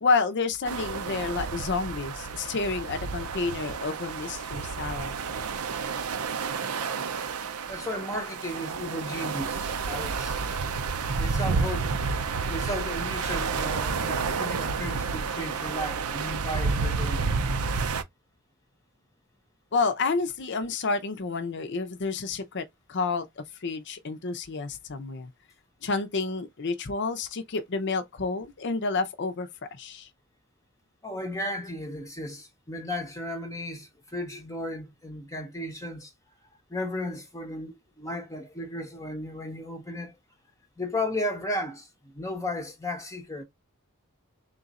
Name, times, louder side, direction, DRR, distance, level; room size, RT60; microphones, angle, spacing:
voice 1, 0.0-5.1 19.7-22.6 22.9-25.3 25.8-30.1, left 4 dB, 55° left, 0.6 m, -29 dB
sound 1, 0.6-18.0, right 5 dB, 80° right, 0.6 m, -30 dB
voice 2, 7.7-10.4 11.2-11.9 12.5-17.3 31.0-36.1 36.7-40.2 40.8-43.4, left 1 dB, 15° left, 0.8 m, -34 dB
3.8 x 2.5 x 4.0 m
head